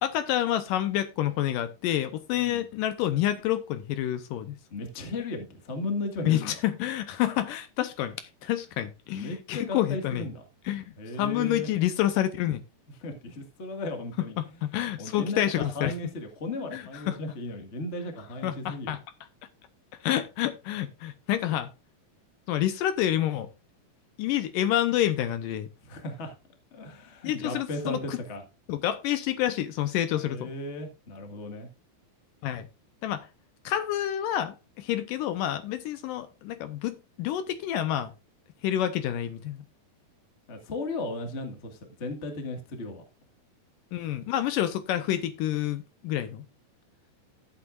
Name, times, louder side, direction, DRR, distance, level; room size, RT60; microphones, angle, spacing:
voice 1, 0.0-4.6 6.2-8.2 8.4-10.3 10.7-10.8 11.2-12.6 14.4-15.9 16.7-17.2 18.4-19.0 20.0-21.7 22.5-23.5 24.2-25.7 27.2-28.2 28.7-30.5 32.4-32.7 33.0-33.3 33.6-38.1 38.6-39.6 43.9-46.4, left 12 dB, 75° left, 2.2 m, -28 dB
voice 2, 2.3-2.6 4.7-6.5 9.1-10.4 11.0-11.7 13.0-14.3 15.0-18.9 25.8-26.4 26.7-28.4 30.1-31.7 40.5-43.0, left 2 dB, 40° left, 1.0 m, -36 dB
14.5 x 8.2 x 2.4 m
omnidirectional pair, 4.2 m